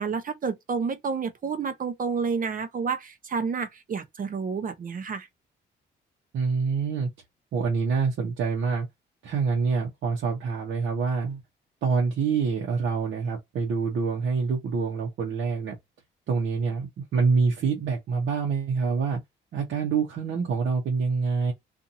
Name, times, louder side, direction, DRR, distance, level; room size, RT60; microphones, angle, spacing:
voice 1, 0.0-5.3, right 5 dB, 45° right, 0.7 m, -30 dB
voice 2, 6.3-7.1 7.5-8.9 9.2-11.4 11.8-15.7 16.3-19.2 19.5-21.5, right 5 dB, 70° right, 0.9 m, -26 dB
2.7 x 2.6 x 2.5 m
cardioid pair, 90°, 20 cm